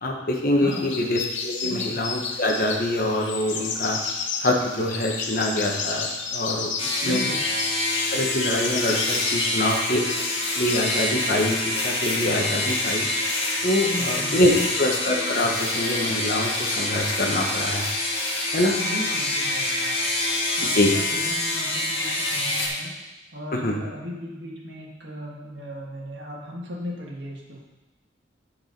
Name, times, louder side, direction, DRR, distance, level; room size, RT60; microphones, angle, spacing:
voice 1, 0.0-4.0 4.4-6.7 7.0-7.2 8.1-10.0 10.5-13.1 13.6-14.5 14.8-17.9 18.5-18.8 20.7-20.9 23.6-23.8, left 1 dB, 45° left, 1 dB, 1.1 m, -24 dB
voice 2, 0.6-1.0 1.6-2.0 7.0-7.4 13.9-14.8 18.8-19.9 20.6-27.6, equal, 65° right, -3 dB, 1.9 m, -36 dB
sound 1, 0.7-11.1, left 5 dB, 70° left, 0.9 m, -32 dB
sound 2, 6.8-22.7, left 2 dB, 30° left, 1.4 m, -26 dB
10.0 x 4.8 x 5.3 m, 1.1 s
head